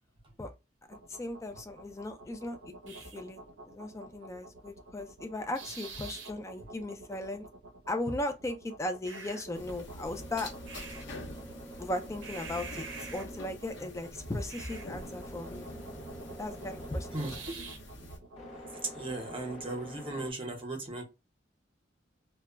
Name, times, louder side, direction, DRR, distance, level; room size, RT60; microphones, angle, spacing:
voice 1, 0.9-7.5 7.9-10.5 11.8-12.9 13.1-15.7 16.4-17.4, left 1 dB, 15° left, 0.4 m, -37 dB
sound 1, 0.9-19.6, right 3 dB, 80° right, 0.6 m, -48 dB
sound 2, 9.4-20.3, equal, 40° left, 0.8 m, -48 dB
sound 3, 9.5-18.2, left 1 dB, 70° left, 0.8 m, -46 dB
voice 2, 17.1-17.7 18.8-21.0, right 2 dB, 30° right, 0.7 m, -37 dB
2.2 x 2.0 x 3.4 m
head